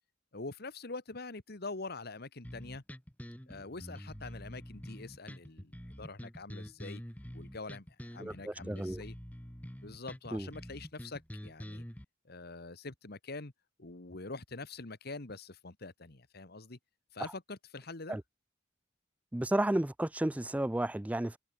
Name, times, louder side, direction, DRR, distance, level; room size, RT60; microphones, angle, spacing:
voice 1, 0.3-2.8 3.5-7.0 7.3-9.2 9.8-11.8 12.2-13.5 13.8-16.8 17.1-18.2, left 3 dB, 55° left, 1.7 m, -45 dB
sound 1, 2.4-12.0, equal, 10° left, 1.9 m, -46 dB
voice 2, 8.2-9.0 10.3-10.5 18.1-18.2 19.3-21.4, right 1 dB, 10° right, 0.4 m, -32 dB
head